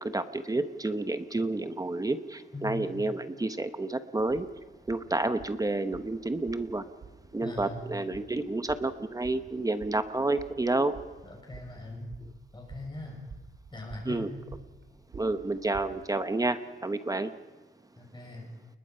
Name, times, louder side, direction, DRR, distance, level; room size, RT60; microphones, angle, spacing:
voice 1, 0.0-4.5 4.9-6.8 7.3-10.9 14.0-14.3 15.1-17.3, right 2 dB, 15° right, 10 dB, 1.0 m, -30 dB
voice 2, 2.5-2.9 7.4-7.8 11.2-12.1 12.5-13.2 13.7-14.3 18.0-18.5, left 2 dB, 20° left, 0 dB, 7.1 m, -41 dB
sound 1, 4.2-16.1, right 5 dB, 65° right, 3.3 m, -51 dB
29.5 x 21.0 x 5.6 m, 1.3 s
wide cardioid pair, 170°, 21 cm